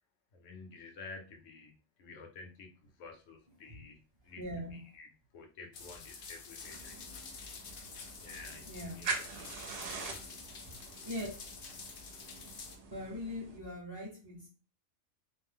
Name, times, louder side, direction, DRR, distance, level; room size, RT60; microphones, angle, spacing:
voice 1, 0.3-7.1 8.2-10.3, left 4 dB, 80° left, 3 dB, 1.0 m, -52 dB
voice 2, 4.4-4.8 8.7-9.1 11.0-11.3 12.9-14.5, left 1 dB, 25° right, -6 dB, 0.7 m, -41 dB
sound 1, 5.7-12.8, left 5 dB, 60° left, 0.6 m, -48 dB
sound 2, 6.6-13.6, right 4 dB, 60° right, 0.7 m, -44 dB
2.6 x 2.0 x 3.3 m, 0.34 s
omnidirectional pair, 1.3 m